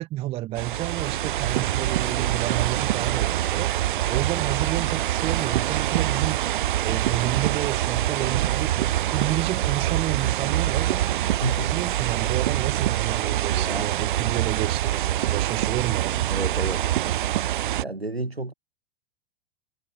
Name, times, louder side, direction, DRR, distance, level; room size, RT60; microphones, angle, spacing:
voice 1, 0.0-6.4 6.8-11.1 11.6-16.3, right 16 dB, 20° right, 0.5 m, -30 dB
sound 1, 0.6-17.8, right 13 dB, 55° right, 1.1 m, -25 dB
voice 2, 11.4-11.9 13.5-14.0 16.3-16.9 17.8-18.5, right 2 dB, 85° right, 4.1 m, -31 dB
figure-of-eight pair, 95°, 30 cm